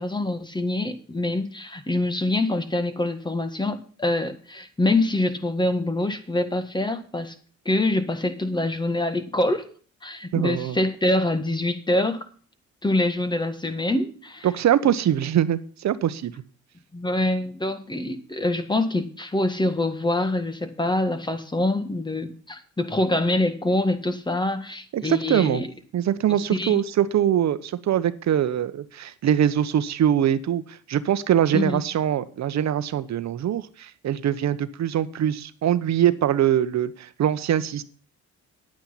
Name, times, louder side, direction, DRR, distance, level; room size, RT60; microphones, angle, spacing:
voice 1, 0.0-7.4 7.7-9.6 10.0-12.3 12.8-14.5 16.9-25.7 26.3-26.8 31.5-31.8, left 2 dB, 15° left, 9 dB, 1.8 m, -25 dB
voice 2, 10.3-10.8 14.4-16.3 24.9-25.6 25.9-37.8, right 10 dB, 65° right, 13 dB, 1.1 m, -23 dB
10.5 x 9.1 x 5.7 m, 0.42 s
cardioid pair, 90°, 30 cm